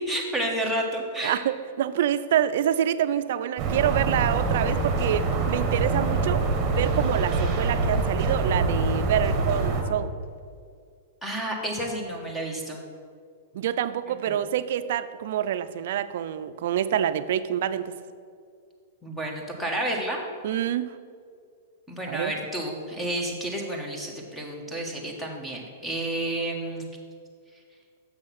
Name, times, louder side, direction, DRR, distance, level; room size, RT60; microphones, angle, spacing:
voice 1, 0.1-1.4 11.2-12.8 14.1-14.4 19.0-20.2 21.9-26.8, right 1 dB, 5° left, -1 dB, 1.4 m, -30 dB
voice 2, 1.2-10.1 13.5-17.9 20.4-20.9 22.1-22.3, right 10 dB, 65° right, 12 dB, 0.4 m, -27 dB
sound 1, 3.6-9.8, right 3 dB, 30° right, 1.4 m, -25 dB
7.3 x 6.3 x 5.9 m, 2.2 s
hypercardioid pair, 135°, 0 cm